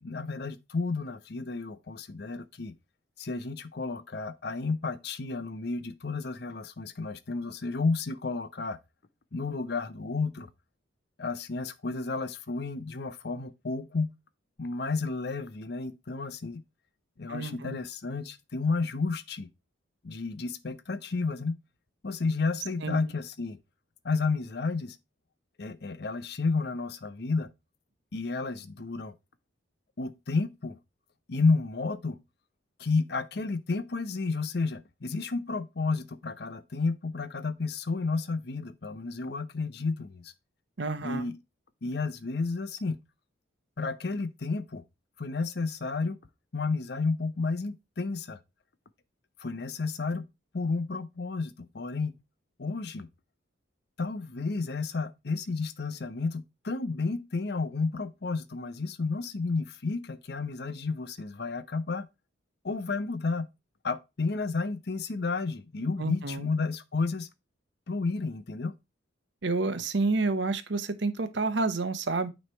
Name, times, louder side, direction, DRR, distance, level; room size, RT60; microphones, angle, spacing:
voice 1, 0.0-2.7 3.2-8.8 9.3-10.5 11.2-14.1 14.6-16.6 17.2-19.5 20.0-21.5 22.0-23.6 24.0-25.0 25.6-27.5 28.1-29.1 30.0-30.8 31.3-32.2 32.8-40.3 41.0-41.4 41.8-43.0 43.8-44.8 45.2-46.2 46.5-48.4 49.4-50.3 50.5-52.2 52.6-53.1 54.0-62.1 62.6-63.5 63.8-67.3 67.9-68.7, left 3 dB, 55° left, 0.7 m, -31 dB
voice 2, 17.3-17.8 22.8-23.0 40.8-41.2 66.0-66.5 69.4-72.3, right 3 dB, 65° right, 0.8 m, -29 dB
9.2 x 3.2 x 4.3 m
head